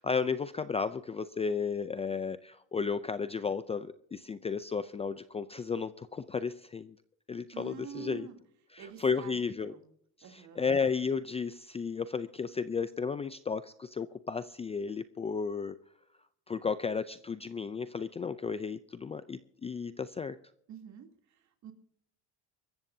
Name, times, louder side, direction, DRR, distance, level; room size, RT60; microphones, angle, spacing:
voice 1, 0.0-7.0 7.3-8.3 8.7-9.7 10.3-15.7 16.5-20.4, left 5 dB, 15° left, 13 dB, 0.4 m, -33 dB
voice 2, 7.5-8.4 8.8-9.9 10.2-10.7 20.7-21.7, right 8 dB, 50° right, 4 dB, 3.0 m, -47 dB
24.5 x 14.0 x 2.7 m, 0.69 s
cardioid pair, 120°, 38 cm